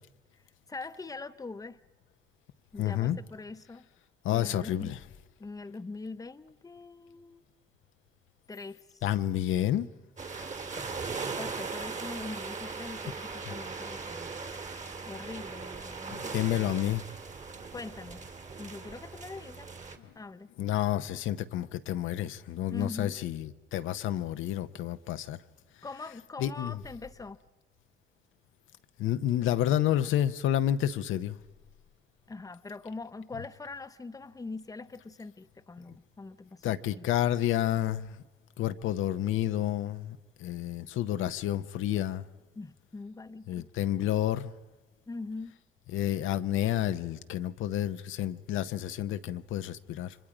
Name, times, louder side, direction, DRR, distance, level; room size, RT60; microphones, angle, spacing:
voice 1, 0.7-1.8 2.7-3.9 4.3-5.0 5.4-7.4 8.5-9.0 11.4-14.3 15.1-16.8 17.7-18.2 18.6-19.7 20.1-20.5 22.7-23.3 25.8-27.4 32.3-37.1 42.6-43.7 45.1-45.6, left 3 dB, 15° left, 0.8 m, -43 dB
voice 2, 2.8-3.2 4.2-5.0 9.0-9.9 13.5-13.6 16.1-17.0 20.0-20.1 20.6-25.4 26.4-26.8 29.0-31.4 36.6-38.2 38.6-42.2 43.5-44.5 45.9-50.2, left 12 dB, 85° left, 0.8 m, -30 dB
sound 1, 10.2-20.0, right 4 dB, 40° right, 2.1 m, -39 dB
29.0 x 24.0 x 5.0 m
cardioid pair, 90°, 20 cm